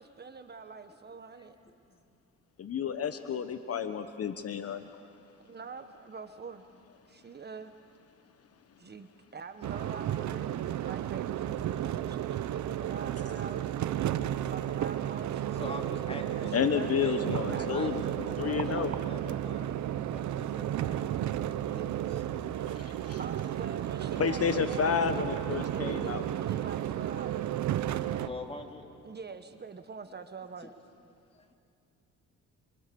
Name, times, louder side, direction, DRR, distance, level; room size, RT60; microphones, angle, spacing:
voice 1, 0.0-1.6 5.4-6.6 7.1-7.7 8.8-13.7 14.4-15.8 16.3-17.0 17.5-18.7 22.8-25.4 25.7-27.4 29.0-30.8, right 5 dB, 35° right, 9 dB, 1.3 m, -45 dB
voice 2, 2.6-5.0 16.5-19.0 22.8-23.2 24.2-26.2, left 7 dB, 50° left, 9 dB, 1.2 m, -31 dB
sound 1, 9.6-28.3, right 11 dB, 70° right, 0.9 m, -33 dB
voice 3, 15.5-16.5 17.0-19.8 20.1-22.2 25.9-26.0 28.2-28.8 31.3-31.5, left 2 dB, 20° left, 2 dB, 3.3 m, -44 dB
27.0 x 26.0 x 7.0 m, 2.3 s
cardioid pair, 90°, 30 cm